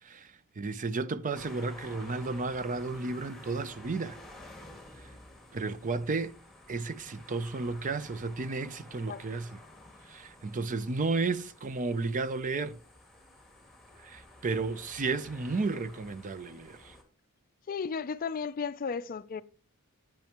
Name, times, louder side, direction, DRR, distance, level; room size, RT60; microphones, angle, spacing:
voice 1, 0.0-4.2 5.0-5.1 5.5-6.3 6.7-9.6 10.1-12.8 14.0-17.0, right 3 dB, 35° right, 0.5 m, -33 dB
sound 1, 1.3-17.0, left 1 dB, ahead, 2.1 m, -52 dB
voice 2, 17.7-19.4, left 5 dB, 40° left, 0.4 m, -34 dB
10.5 x 8.9 x 3.0 m
head